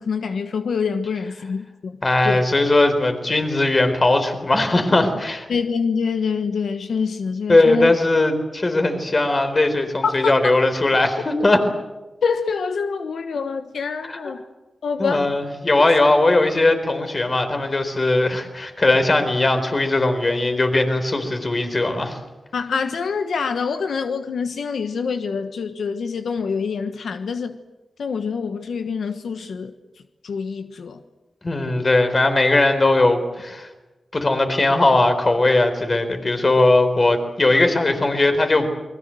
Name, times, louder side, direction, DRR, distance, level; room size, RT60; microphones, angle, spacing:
voice 1, 0.0-2.4 5.5-7.9 10.0-10.6 12.2-14.4 14.8-15.3 15.8-15.9 22.5-27.6 28.0-29.7 30.2-31.0, left 5 dB, 90° left, 1.3 m, -26 dB
voice 2, 2.0-5.5 7.5-11.6 14.1-14.2 15.0-22.2 31.4-33.7 34.1-38.7, left 2 dB, 35° left, 4.1 m, -19 dB
29.0 x 22.0 x 7.8 m
wide cardioid pair, 100°, 0 cm